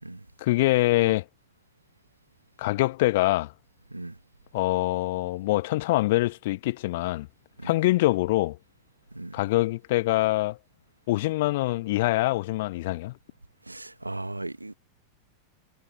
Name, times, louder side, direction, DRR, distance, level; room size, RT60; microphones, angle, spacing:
voice 1, 0.4-1.2 2.6-3.5 4.5-7.3 7.6-8.6 9.3-10.6 11.1-13.2, left 18 dB, 50° left, 1.3 m, -24 dB
voice 2, 13.6-14.7, right 2 dB, 85° right, 1.7 m, -37 dB
figure-of-eight pair, 90°, 0 cm